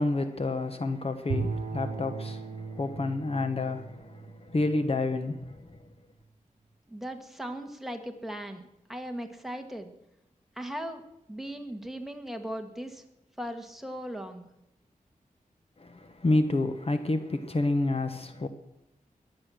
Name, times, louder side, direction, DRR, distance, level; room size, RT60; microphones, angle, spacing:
voice 1, 0.0-5.6 15.8-18.5, left 2 dB, 45° left, 1.1 m, -29 dB
Bowed string instrument, 1.3-5.5, right 4 dB, 90° right, 0.9 m, -37 dB
voice 2, 6.9-8.6 8.9-9.9 10.6-11.0 11.3-13.0 13.4-14.5, equal, ahead, 1.7 m, -38 dB
21.5 x 8.7 x 6.3 m
wide cardioid pair, 115°, 14 cm